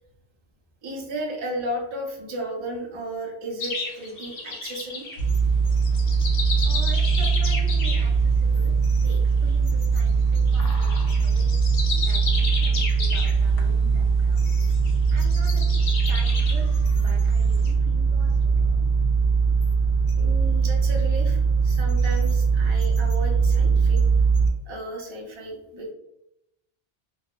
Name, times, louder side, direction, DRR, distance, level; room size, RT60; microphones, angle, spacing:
voice 1, 0.8-5.1 20.1-24.0 24.7-25.9, right 1 dB, 40° right, -1 dB, 0.4 m, -34 dB
sound 1, 3.6-5.2 5.7-8.1 10.3-13.6 14.4-16.7 17.4-17.7, left 3 dB, 90° left, 1.0 m, -33 dB
sound 2, 5.2-24.5, right 5 dB, 60° left, 0.7 m, -21 dB
voice 2, 6.6-11.6 12.0-14.4 15.1-18.7, right 3 dB, 70° right, 1 dB, 0.9 m, -44 dB
2.3 x 2.0 x 2.9 m, 0.85 s
omnidirectional pair, 1.2 m